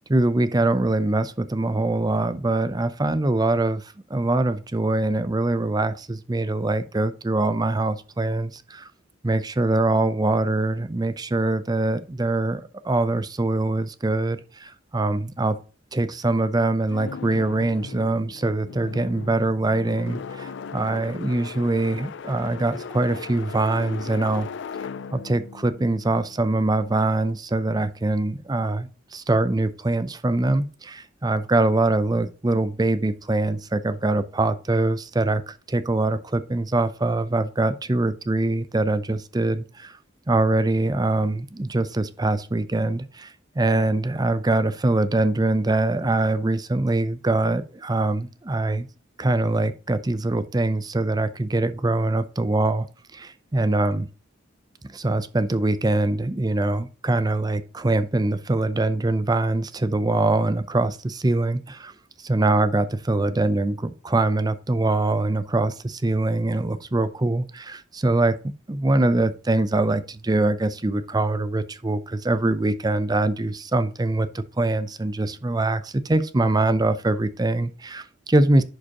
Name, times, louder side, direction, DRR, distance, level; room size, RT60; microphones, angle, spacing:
voice 1, 0.1-3.8 4.1-8.9 9.2-15.6 15.9-24.5 25.1-40.0 40.3-43.3 43.6-48.9 49.2-52.9 53.1-54.1 54.9-61.9 62.2-68.4 68.7-78.6, right 2 dB, 20° right, 0.5 m, -23 dB
sound 1, 16.9-26.9, left 5 dB, 65° left, 0.4 m, -38 dB
11.0 x 4.9 x 2.9 m
head